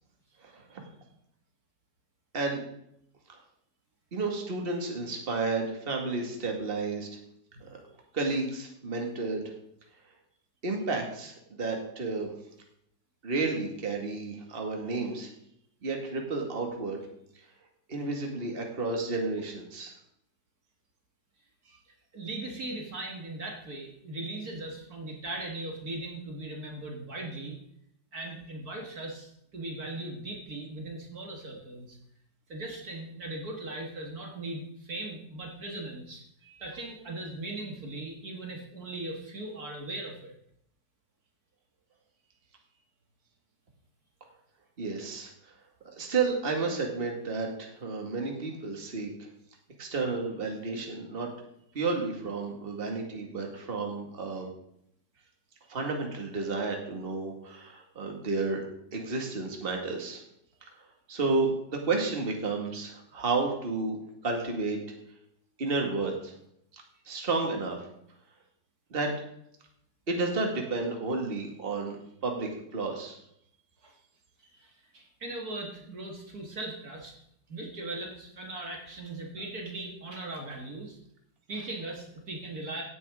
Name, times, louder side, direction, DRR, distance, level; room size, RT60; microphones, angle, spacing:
voice 1, 4.1-7.1 7.6-7.8 8.1-9.4 10.6-12.3 13.2-15.3 15.8-17.0 17.9-19.9 44.8-45.3 45.9-49.1 49.8-51.3 51.7-54.5 55.7-58.6 58.9-60.2 61.1-64.0 64.2-64.8 65.6-66.3 67.1-67.8 68.9-69.1 70.1-73.2, right 3 dB, 30° right, 2 dB, 2.0 m, -31 dB
voice 2, 22.1-27.6 28.1-32.0 32.5-40.3 73.8-73.9 74.4-77.1 77.5-81.0 81.5-82.8, right 2 dB, 55° right, 1 dB, 2.1 m, -39 dB
16.5 x 9.5 x 3.7 m, 0.74 s
omnidirectional pair, 2.0 m